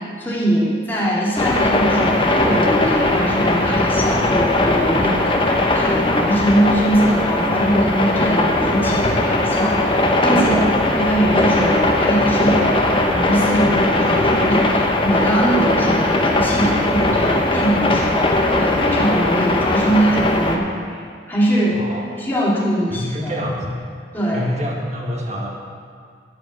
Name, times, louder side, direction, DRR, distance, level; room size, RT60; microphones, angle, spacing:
voice 1, 0.0-21.0 21.3-21.8 22.2-23.3 24.1-24.4, right 1 dB, 10° left, -7 dB, 2.5 m, -21 dB
Rain on Roof, 1.4-20.6, left 2 dB, 25° left, 1.0 m, -19 dB
voice 2, 21.7-22.2 22.9-23.8 24.3-25.5, equal, 35° right, -2 dB, 1.8 m, -26 dB
14.0 x 5.3 x 8.1 m, 2.2 s
head